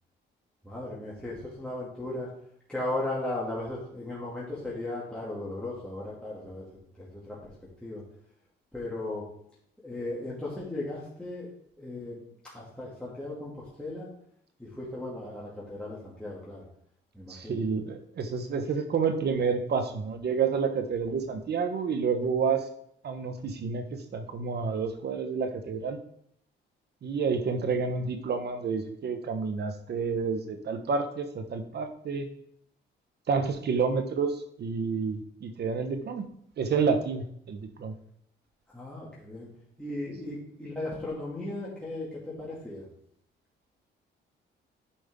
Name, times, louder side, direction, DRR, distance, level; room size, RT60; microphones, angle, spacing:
voice 1, 0.6-2.3 2.7-6.6 7.0-7.5 7.8-8.0 8.7-9.3 9.8-11.5 11.8-12.2 12.4-14.1 14.6-16.6 17.1-17.6 38.7-39.5 39.8-42.9, left 2 dB, 5° left, -7 dB, 2.6 m, -36 dB
voice 2, 17.3-22.6 23.0-26.0 27.0-32.3 33.3-36.2 36.6-37.9, right 5 dB, 55° right, 7 dB, 1.2 m, -29 dB
9.8 x 5.2 x 3.7 m, 0.68 s
cardioid pair, 90°, 20 cm